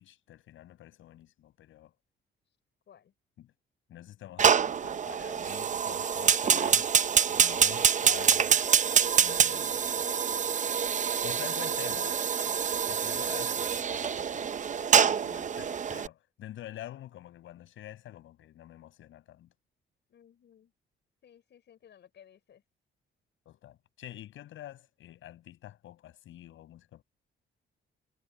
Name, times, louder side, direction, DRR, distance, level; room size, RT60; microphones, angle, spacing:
voice 1, 0.0-2.0 3.4-3.5 3.9-6.9 7.3-8.5 9.2-9.9 11.2-12.2 12.9-19.5 23.4-27.0, left 13 dB, 80° left, 8.0 m, -47 dB
Fire, 4.4-16.1, right 7 dB, 40° right, 0.7 m, -26 dB
voice 2, 8.1-8.7 10.0-10.5 11.1-12.3 20.1-20.7 21.2-22.6, left 9 dB, 65° left, 6.3 m, -56 dB
cardioid pair, 90°, 20 cm